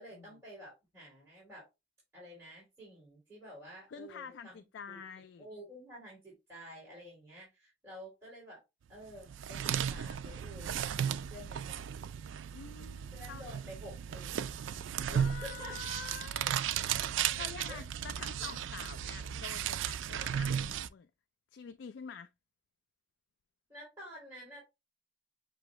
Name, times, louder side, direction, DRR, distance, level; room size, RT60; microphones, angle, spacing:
voice 1, 0.0-1.7 2.1-4.6 4.9-5.0 5.4-8.6 8.9-12.1 13.1-14.6 15.1-15.8 17.4-17.8 23.7-24.6, equal, 15° right, 2.8 m, -50 dB
voice 2, 3.9-5.5 12.5-13.4 15.1-21.1 21.5-22.3, left 6 dB, 65° left, 0.3 m, -47 dB
sound 1, 9.1-20.9, right 9 dB, 75° right, 0.3 m, -35 dB
6.1 x 2.8 x 3.0 m
head